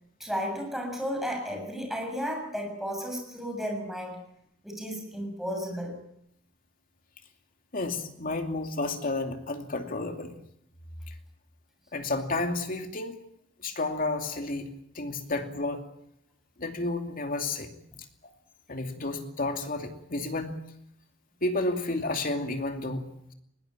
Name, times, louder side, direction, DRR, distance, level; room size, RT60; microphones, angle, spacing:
voice 1, 0.2-4.2 4.6-6.0, equal, ahead, 2 dB, 7.2 m, -33 dB
voice 2, 7.7-10.4 11.1-11.2 11.9-13.2 13.6-15.8 16.6-17.8 18.7-20.6 21.4-23.3, left 2 dB, 45° left, 5 dB, 2.6 m, -31 dB
21.0 x 19.0 x 9.1 m, 0.75 s
head